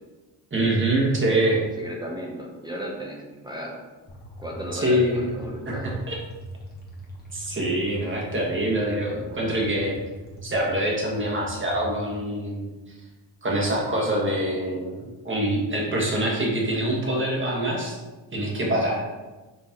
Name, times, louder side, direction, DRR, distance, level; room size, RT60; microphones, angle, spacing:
voice 1, 0.5-1.6 4.8-5.3 5.7-5.8 6.1-6.2 7.3-10.0 10.4-12.7 13.4-18.0 18.3-19.1, right 1 dB, 25° right, -3 dB, 1.3 m, -25 dB
voice 2, 1.8-3.8 4.4-6.0, equal, 10° right, -2 dB, 0.7 m, -35 dB
sound 1, 4.1-12.1, equal, 20° left, 1.1 m, -42 dB
5.7 x 3.0 x 2.9 m, 1.2 s
cardioid pair, 90°, 44 cm